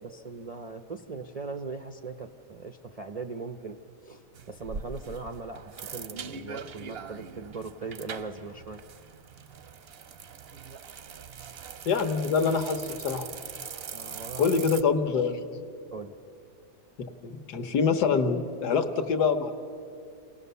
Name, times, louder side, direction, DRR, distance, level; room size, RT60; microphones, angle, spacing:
voice 1, 0.0-3.8 4.0-4.2 4.5-8.8 13.9-14.6 15.9-16.2, right 4 dB, 90° right, 6 dB, 0.3 m, -39 dB
sound 1, 4.3-14.8, right 6 dB, 60° right, 0.6 m, -42 dB
voice 2, 11.9-13.3 14.4-15.5 17.2-19.5, left 5 dB, 75° left, 6 dB, 1.8 m, -25 dB
28.0 x 18.5 x 6.9 m, 2.5 s
omnidirectional pair, 1.8 m